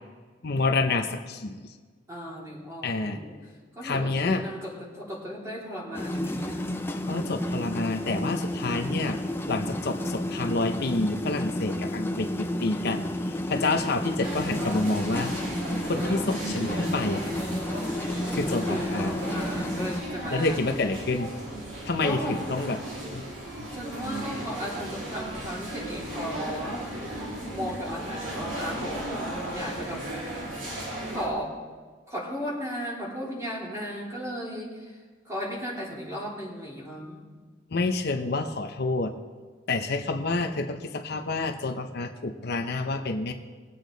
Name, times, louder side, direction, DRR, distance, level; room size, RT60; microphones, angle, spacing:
voice 1, 0.4-1.6 2.8-3.2 3.8-4.4 7.1-9.2 9.5-15.3 15.8-17.2 18.3-19.1 20.3-21.3 21.9-22.8 23.1-23.2 37.7-39.1 39.7-43.3, left 3 dB, 60° left, 6 dB, 0.8 m, -28 dB
voice 2, 2.1-3.4 3.7-6.6 18.7-20.6 22.0-22.6 23.7-26.8 27.5-30.4 31.1-31.6 32.1-37.2, equal, 15° right, -5 dB, 3.5 m, -36 dB
sound 1, 5.9-20.0, left 1 dB, 10° left, 0.6 m, -31 dB
sound 2, 14.2-31.3, right 1 dB, 80° right, 2.9 m, -35 dB
20.5 x 8.3 x 3.9 m, 1.5 s
head